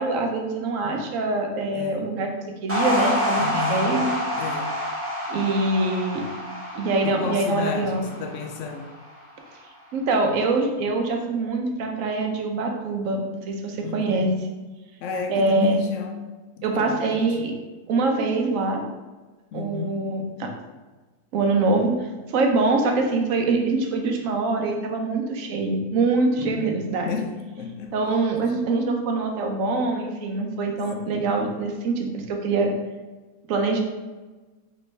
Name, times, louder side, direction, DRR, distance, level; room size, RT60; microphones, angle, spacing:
voice 1, 0.0-2.3 2.6-4.1 5.3-6.2 6.7-8.0 9.9-13.2 13.5-14.3 15.3-15.7 16.6-17.5 17.9-18.8 19.5-20.5 21.3-22.0 22.3-27.1 27.9-32.7 33.5-33.8, right 3 dB, 65° right, 3 dB, 1.0 m, -24 dB
voice 2, 1.7-2.1 3.4-3.9 4.3-4.7 7.0-8.9 13.8-14.3 15.0-16.3 16.6-17.3 19.5-20.0 26.4-26.8 27.0-27.9, left 5 dB, 65° left, 5 dB, 0.8 m, -32 dB
sound 1, 2.7-9.2, equal, 10° right, 0.7 m, -28 dB
4.5 x 3.0 x 3.2 m, 1.3 s
omnidirectional pair, 1.6 m